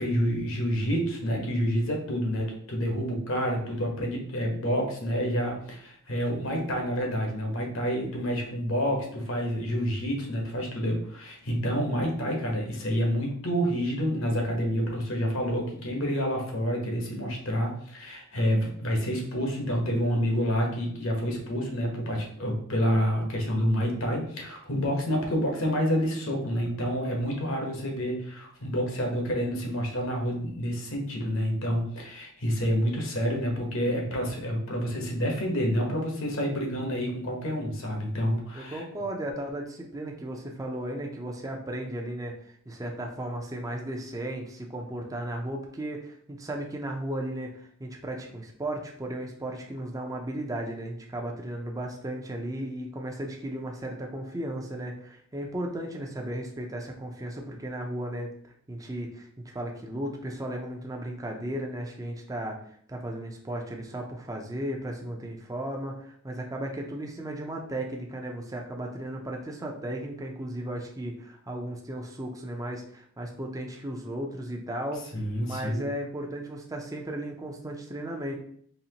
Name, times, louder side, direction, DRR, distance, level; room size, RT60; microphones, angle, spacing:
voice 1, 0.0-38.8 75.1-75.8, equal, 65° left, 1 dB, 1.0 m, -28 dB
voice 2, 38.5-62.6 62.9-75.0 75.4-78.3, right 1 dB, 15° right, 1 dB, 0.5 m, -35 dB
4.2 x 3.0 x 2.8 m, 0.62 s
head